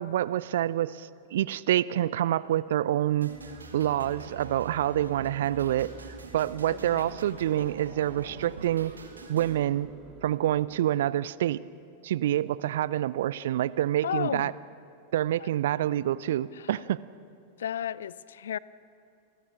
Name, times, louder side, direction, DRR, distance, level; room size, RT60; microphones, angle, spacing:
voice 1, 0.0-3.3 3.7-5.9 6.3-8.9 9.3-9.9 10.2-11.6 12.0-14.5 15.1-17.0, right 12 dB, 60° right, 20 dB, 0.5 m, -27 dB
sound 1, 3.2-9.6, right 3 dB, 75° right, 2.2 m, -45 dB
sound 2, 3.3-10.9, right 4 dB, 25° right, 3.1 m, -49 dB
voice 2, 6.7-7.1 14.0-14.5 15.4-15.6 16.5-16.8 17.6-18.6, left 9 dB, 65° left, 21 dB, 0.5 m, -34 dB
29.0 x 22.0 x 6.3 m, 2.6 s
figure-of-eight pair, 90°, 0 cm